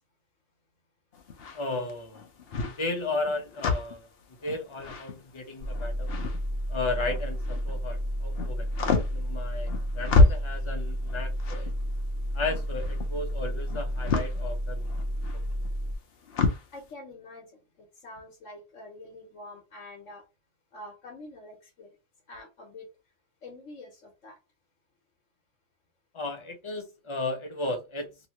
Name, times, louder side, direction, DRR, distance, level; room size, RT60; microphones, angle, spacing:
sound 1, 1.1-7.8 8.2-16.7, left 3 dB, 55° left, 0.9 m, -29 dB
voice 1, 1.5-2.2 2.6-4.1 4.4-6.1 6.7-8.7 9.1-11.7 12.3-15.0 15.3-15.5 26.1-28.1, left 2 dB, 30° left, 0.7 m, -34 dB
sound 2, 5.6-16.0, equal, 55° right, 1.0 m, -31 dB
voice 2, 16.7-20.2 20.7-22.0 22.3-22.9 23.4-24.4, left 2 dB, 75° left, 1.3 m, -46 dB
3.0 x 2.9 x 2.9 m
omnidirectional pair, 1.3 m